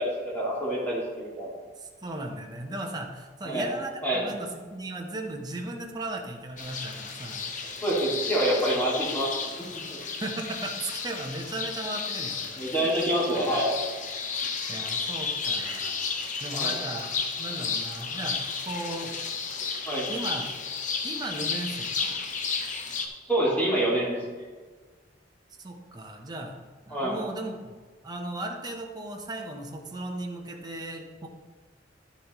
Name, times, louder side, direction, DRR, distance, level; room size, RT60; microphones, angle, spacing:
voice 1, 0.0-1.6 3.4-3.7 4.0-4.2 7.8-10.0 12.6-13.7 16.5-16.8 19.8-20.1 23.3-24.2 26.9-27.2, right 1 dB, 10° left, -7 dB, 2.2 m, -27 dB
voice 2, 1.8-7.5 10.2-12.9 14.4-16.0 16.4-17.1 17.4-18.4 18.6-19.1 20.1-20.5 21.0-22.3 25.6-26.6 26.9-31.3, right 2 dB, 25° right, 1 dB, 0.9 m, -36 dB
sound 1, 6.6-23.1, left 5 dB, 45° left, 0.8 m, -33 dB
11.5 x 7.0 x 3.0 m, 1.4 s
head